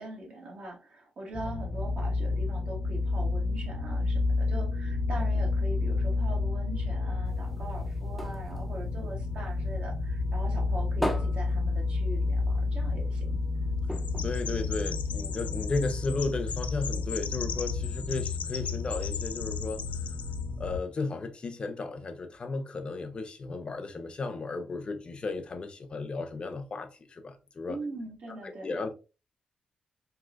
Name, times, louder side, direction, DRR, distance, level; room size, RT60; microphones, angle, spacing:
voice 1, 0.0-13.4 27.7-28.9, right 1 dB, 55° right, 1.2 m, -41 dB
sound 1, 1.3-20.8, left 3 dB, 30° right, 1.5 m, -30 dB
sound 2, 7.3-9.9 10.3-12.5 12.9-13.0 13.3-13.4 13.8-15.4 16.0-16.1, equal, ahead, 0.5 m, -38 dB
Chirp tweet, 13.9-20.4, left 7 dB, 70° left, 0.3 m, -39 dB
voice 2, 14.2-19.8 20.6-27.8 28.4-28.9, left 3 dB, 40° left, 0.7 m, -34 dB
3.9 x 2.7 x 2.4 m
cardioid pair, 100°, 3 cm